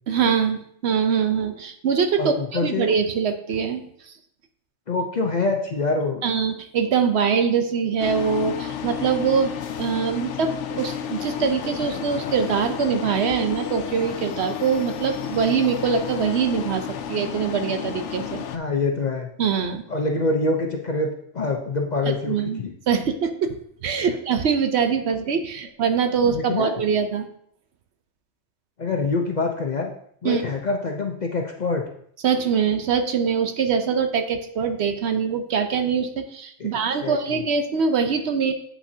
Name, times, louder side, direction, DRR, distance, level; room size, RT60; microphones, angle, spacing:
voice 1, 0.1-3.9 6.2-16.8 17.1-18.4 19.4-19.8 22.1-22.6 22.9-27.3 30.2-30.4 32.2-38.5, right 6 dB, 65° right, 7 dB, 0.9 m, -23 dB
voice 2, 2.2-2.9 4.9-6.2 18.5-19.3 19.9-22.7 26.2-26.7 28.8-29.9 30.2-31.8 36.6-36.7 37.0-37.4, left 3 dB, 45° left, 2 dB, 0.6 m, -25 dB
sound 1, 8.0-18.6, left 9 dB, 75° left, 0.9 m, -32 dB
8.2 x 5.8 x 2.7 m, 0.67 s
omnidirectional pair, 1.3 m